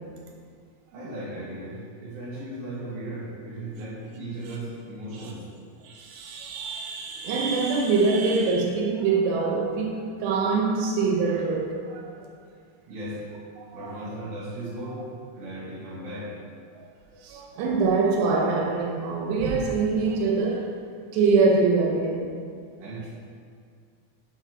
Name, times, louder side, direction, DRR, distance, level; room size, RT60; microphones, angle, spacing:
voice 1, 0.9-5.5 6.9-7.0 12.9-13.2 13.7-15.1 15.4-16.4 22.8-23.2, right 1 dB, 65° right, 3.5 m, -36 dB
voice 2, 5.8-12.1 13.6-13.9 16.7-16.9 17.2-20.8 21.1-22.3, right 4 dB, 85° right, 2.9 m, -24 dB
10.0 x 4.7 x 4.5 m
omnidirectional pair, 4.8 m